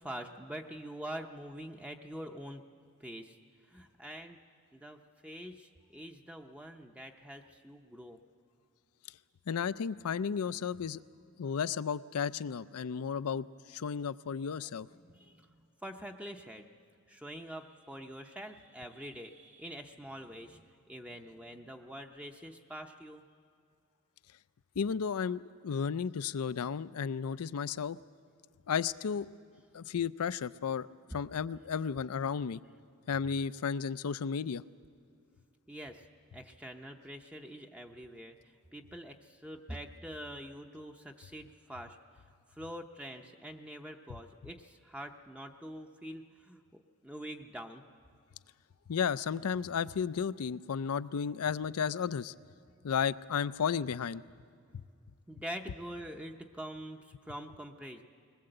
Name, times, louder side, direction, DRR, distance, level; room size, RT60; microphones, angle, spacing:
voice 1, 0.0-2.6 3.0-3.4 3.7-4.4 4.7-8.2 15.0-16.6 17.1-23.2 35.7-36.1 36.3-42.0 42.5-47.8 55.3-58.0, equal, 5° right, 4 dB, 0.6 m, -45 dB
voice 2, 9.5-11.0 11.4-14.9 24.8-28.0 28.7-29.3 29.7-30.9 31.1-32.6 33.1-34.6 48.9-52.3 52.8-54.2, left 6 dB, 85° left, 17 dB, 0.5 m, -33 dB
21.0 x 20.0 x 7.8 m, 2.3 s
head